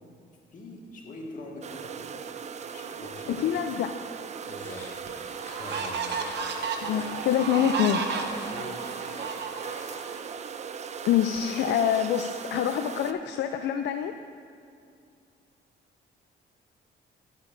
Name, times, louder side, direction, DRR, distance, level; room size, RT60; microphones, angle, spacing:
voice 1, 0.5-2.2 2.7-3.6 4.5-4.9 5.5-6.0 8.5-8.8, left 2 dB, 40° left, -2 dB, 1.7 m, -43 dB
sound 1, 1.6-13.1, right 7 dB, 35° right, 0.4 m, -38 dB
voice 2, 3.3-3.9 6.8-8.0 11.1-14.1, left 10 dB, 65° left, 8 dB, 0.4 m, -26 dB
sound 2, 4.4-4.5 5.1-10.0, right 5 dB, 65° right, 0.8 m, -33 dB
sound 3, 4.5-10.2, left 1 dB, 15° left, 1.8 m, -47 dB
12.5 x 8.0 x 2.6 m, 2.4 s
cardioid pair, 95°, 19 cm